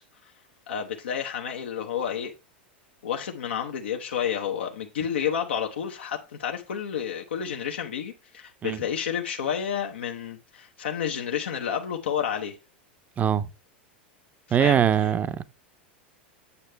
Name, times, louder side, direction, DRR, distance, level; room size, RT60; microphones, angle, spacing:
voice 1, 0.7-2.3 3.0-12.6 14.6-14.8, left 8 dB, 85° left, 1.0 m, -30 dB
voice 2, 13.2-13.5 14.5-15.4, right 8 dB, 25° right, 0.6 m, -22 dB
8.3 x 6.6 x 3.3 m
hypercardioid pair, 105°, 6 cm